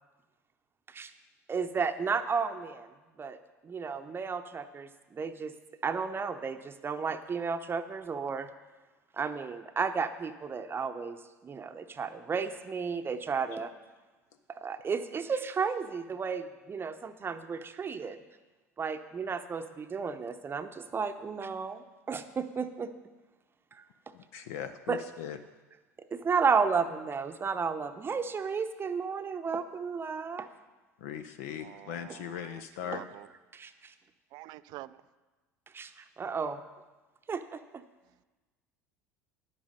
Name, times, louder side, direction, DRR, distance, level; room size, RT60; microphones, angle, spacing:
voice 1, 1.5-2.9 3.2-3.4 3.6-5.5 5.8-8.5 9.1-11.2 11.4-13.7 14.5-18.2 18.8-22.9 23.7-23.8 24.9-25.0 26.1-30.5 33.5-33.9 35.7-36.6 37.3-37.8, right 5 dB, 25° right, 9 dB, 0.7 m, -33 dB
voice 2, 24.1-25.4 31.0-33.0, left 9 dB, 70° left, 9 dB, 0.5 m, -39 dB
voice 3, 31.6-32.1 32.8-33.2 34.3-35.0, right 17 dB, 55° right, 16 dB, 0.4 m, -46 dB
10.5 x 8.8 x 5.3 m, 1.2 s
hypercardioid pair, 70°, 8 cm